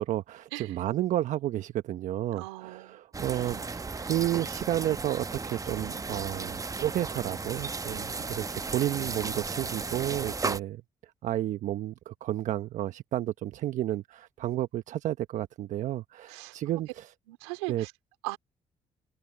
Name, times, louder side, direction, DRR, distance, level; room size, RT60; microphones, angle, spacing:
voice 1, 0.0-10.8 11.2-17.1 17.7-17.9, right 13 dB, 65° right, 1.1 m, -31 dB
voice 2, 2.3-3.0 3.3-3.7 8.2-8.3 16.3-16.6 17.3-17.9 18.2-18.4, right 25 dB, 85° right, 2.8 m, -39 dB
sound 1, 3.1-10.6, right 4 dB, 25° right, 0.9 m, -35 dB
hypercardioid pair, 50°, 14 cm